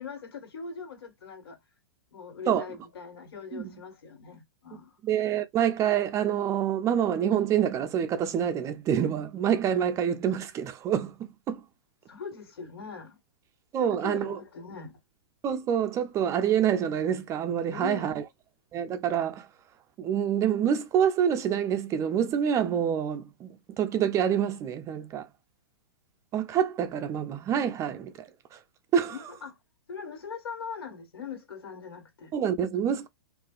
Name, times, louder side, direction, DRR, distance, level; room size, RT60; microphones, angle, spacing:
voice 1, 0.0-1.6 2.1-5.0 12.1-13.2 13.8-15.0 17.7-18.1 29.1-29.6 29.9-32.3, left 6 dB, 80° left, 1.4 m, -41 dB
voice 2, 5.0-11.6 13.7-14.4 15.4-18.2 18.7-19.5 20.0-25.3 26.3-28.6 28.9-29.1 32.3-33.1, right 9 dB, 25° right, 0.4 m, -27 dB
2.7 x 2.5 x 2.3 m
hypercardioid pair, 120°, 13 cm